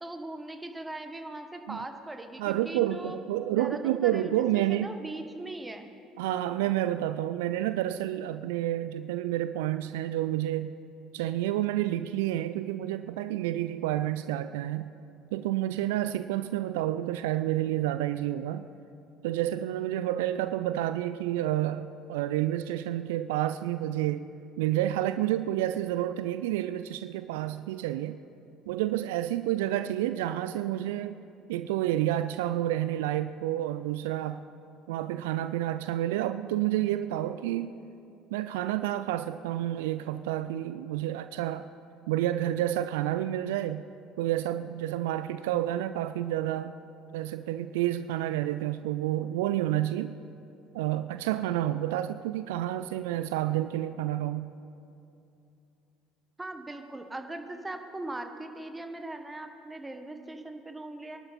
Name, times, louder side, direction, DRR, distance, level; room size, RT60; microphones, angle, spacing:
voice 1, 0.0-3.2 3.5-5.9 56.4-61.2, right 2 dB, 15° right, 6 dB, 1.4 m, -40 dB
voice 2, 2.4-4.9 6.2-10.7 11.1-14.9 15.3-18.7 19.2-24.2 24.6-28.2 28.7-31.2 31.5-34.4 34.9-37.7 38.3-41.7 42.1-43.8 44.2-46.7 47.1-50.1 50.7-54.5, right 13 dB, 70° right, 12 dB, 0.3 m, -29 dB
24.0 x 11.5 x 4.2 m, 2.7 s
figure-of-eight pair, 60°, 0 cm